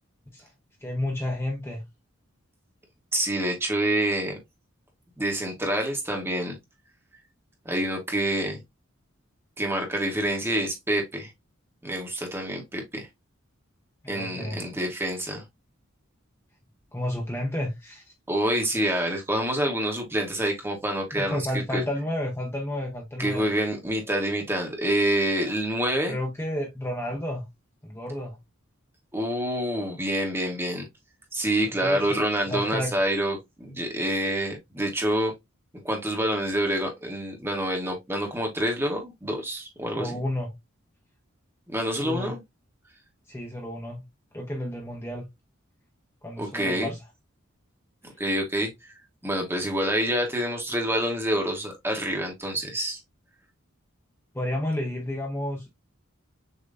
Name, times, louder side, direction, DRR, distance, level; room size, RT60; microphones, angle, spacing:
voice 1, 0.8-1.8 14.0-14.6 16.9-18.0 21.1-23.5 26.1-27.4 27.8-28.4 31.6-32.0 32.5-32.9 39.9-40.5 42.0-42.3 43.3-44.0 44.3-45.3 46.2-47.0 54.3-55.7, left 1 dB, 15° left, 1.0 m, -31 dB
voice 2, 3.1-4.4 5.2-6.6 7.6-8.6 9.6-11.3 11.8-13.1 14.1-15.4 18.3-21.4 21.7-21.8 23.2-26.2 29.1-30.9 31.3-35.3 35.8-40.2 41.7-42.4 46.4-46.9 48.0-48.9 49.2-53.0, right 1 dB, 10° right, 1.3 m, -27 dB
6.6 x 3.0 x 2.5 m
head